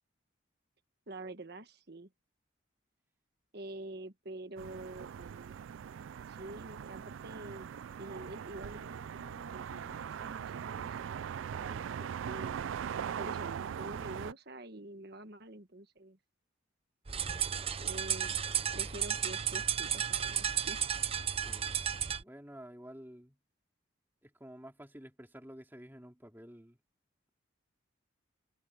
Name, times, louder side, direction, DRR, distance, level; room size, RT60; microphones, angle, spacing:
voice 1, 1.1-2.1 3.5-5.5 6.3-7.7 8.0-12.7 13.2-16.2 17.8-18.4 18.7-20.8, right 1 dB, 50° right, 1.5 m, -47 dB
sound 1, 4.6-14.3, right 8 dB, 70° right, 0.3 m, -41 dB
sound 2, 17.1-22.2, right 8 dB, 30° right, 0.6 m, -33 dB
voice 2, 21.4-21.8 22.2-23.4 24.2-26.8, equal, 10° right, 2.9 m, -51 dB
head